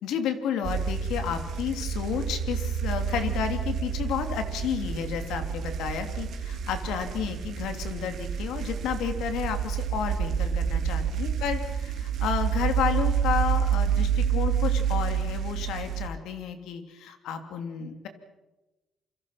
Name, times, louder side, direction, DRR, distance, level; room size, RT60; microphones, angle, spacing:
voice 1, 0.0-18.1, left 8 dB, 85° left, 7 dB, 3.0 m, -31 dB
sound 1, 0.6-16.1, right 7 dB, 70° right, 2.2 m, -28 dB
27.5 x 25.0 x 5.9 m, 1.1 s
cardioid pair, 90°, 0 cm